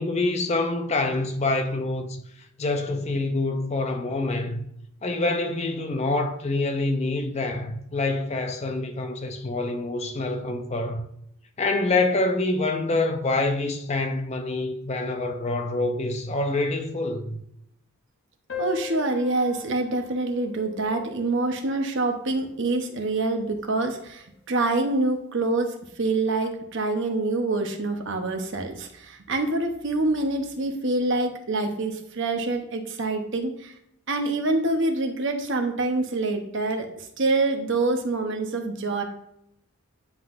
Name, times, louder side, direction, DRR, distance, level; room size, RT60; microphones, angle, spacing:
voice 1, 0.0-2.2 2.6-4.6 5.0-11.0 11.6-17.4, left 2 dB, 30° left, 0.5 m, -26 dB
sound 1, 18.5-23.5, left 8 dB, 55° left, 1.0 m, -41 dB
voice 2, 18.6-33.7 34.1-36.9 37.2-39.0, right 2 dB, 55° right, 0.9 m, -26 dB
9.6 x 3.9 x 2.5 m
head